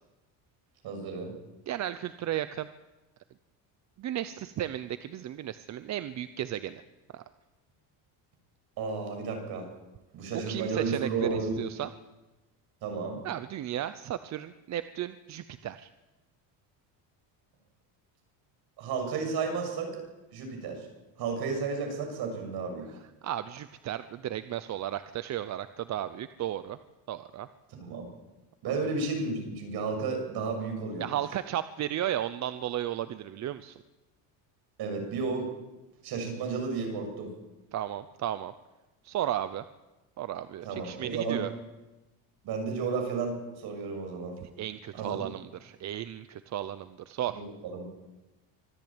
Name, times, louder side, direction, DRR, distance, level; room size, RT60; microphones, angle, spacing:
voice 1, 0.8-1.3 8.8-9.7 10.1-11.6 12.8-13.2 18.8-19.9 20.3-20.9 21.2-22.9 27.7-28.1 28.6-31.1 34.8-35.5 36.0-37.3 40.6-41.5 42.4-44.3 44.9-45.3 47.3-47.9, right 4 dB, 55° right, 4 dB, 7.1 m, -32 dB
voice 2, 1.7-2.7 4.0-6.8 7.1-7.2 10.5-11.9 13.2-15.9 23.2-26.8 27.1-27.5 31.0-33.8 37.7-38.5 39.0-39.6 40.2-41.5 44.4-47.4, right 12 dB, 40° right, 12 dB, 0.7 m, -34 dB
25.0 x 14.0 x 8.9 m, 1.1 s
cardioid pair, 150°, 45 cm